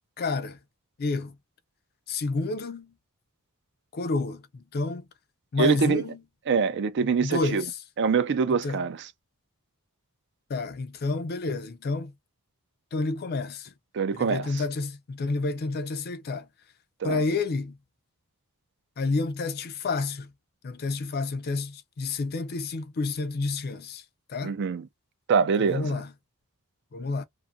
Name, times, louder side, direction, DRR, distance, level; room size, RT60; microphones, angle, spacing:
voice 1, 0.2-0.6 1.0-1.4 2.1-2.9 3.9-5.1 5.5-6.2 7.0-7.7 8.6-8.8 10.5-12.1 12.9-13.7 14.1-16.5 17.0-17.8 19.0-20.3 20.6-24.0 24.3-24.5 25.6-26.1 26.9-27.2, left 3 dB, 45° left, 0.4 m, -29 dB
voice 2, 5.6-6.0 6.5-7.6 8.0-9.1 13.9-14.6 17.0-17.2 24.4-24.9 25.3-26.0, right 5 dB, 55° right, 0.4 m, -25 dB
2.5 x 2.4 x 2.5 m
head